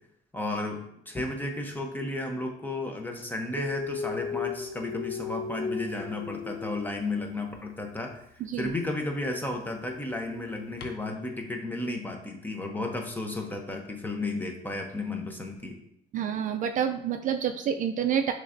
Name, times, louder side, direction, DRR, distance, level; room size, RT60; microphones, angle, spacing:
voice 1, 0.3-8.2 8.6-15.8, left 2 dB, 10° left, 3 dB, 0.7 m, -33 dB
Dog, 3.5-7.5 8.6-8.7 10.8-10.9, left 7 dB, 75° left, 0.6 m, -36 dB
voice 2, 8.4-8.7 16.1-18.3, right 8 dB, 50° right, 7 dB, 0.4 m, -28 dB
6.2 x 3.3 x 2.6 m, 0.73 s
cardioid pair, 110°, 17 cm